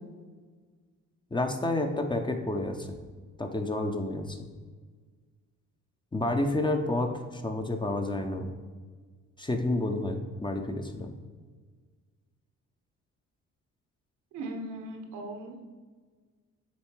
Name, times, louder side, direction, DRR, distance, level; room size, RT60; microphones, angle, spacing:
voice 1, 1.3-3.0 3.4-4.5 6.1-8.5 9.4-11.2, left 2 dB, 15° left, 5 dB, 0.7 m, -30 dB
voice 2, 14.3-15.6, right 1 dB, 85° right, 4 dB, 1.1 m, -38 dB
7.0 x 3.7 x 4.5 m, 1.5 s
cardioid pair, 90°, 30 cm